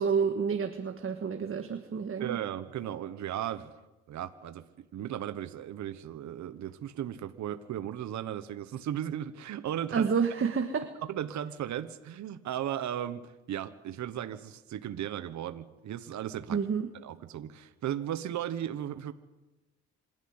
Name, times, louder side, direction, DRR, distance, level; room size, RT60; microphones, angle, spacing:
voice 1, 0.0-2.4 9.9-10.9 16.5-16.9, right 6 dB, 45° right, 6 dB, 1.7 m, -29 dB
voice 2, 2.2-3.7 4.1-10.1 11.1-16.6 17.0-19.1, right 11 dB, 70° right, 12 dB, 1.2 m, -36 dB
26.5 x 12.5 x 9.7 m, 1.1 s
cardioid pair, 90°, 30 cm